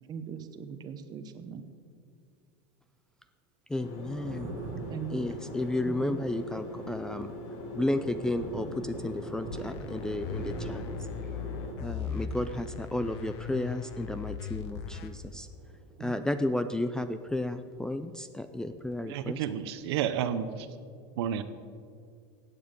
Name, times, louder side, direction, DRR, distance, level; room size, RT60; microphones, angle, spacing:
voice 1, 0.1-1.6 4.9-5.3 5.8-6.3 16.0-16.5, right 7 dB, 30° right, 9 dB, 0.9 m, -40 dB
voice 2, 3.7-4.5 5.1-7.3 7.7-10.8 11.8-15.5 16.0-19.4, left 1 dB, 5° left, 10 dB, 0.3 m, -32 dB
sound 1, 3.8-11.7, left 1 dB, 55° left, 2.3 m, -41 dB
Thunder, 3.8-18.2 18.5-19.7, right 3 dB, 50° right, 1.9 m, -46 dB
sound 2, 9.5-15.1, left 7 dB, 80° left, 1.0 m, -39 dB
voice 3, 19.0-20.7 21.2-21.4, right 9 dB, 75° right, 12 dB, 0.8 m, -31 dB
16.0 x 8.6 x 5.3 m, 2.3 s
supercardioid pair, 150°, 14 cm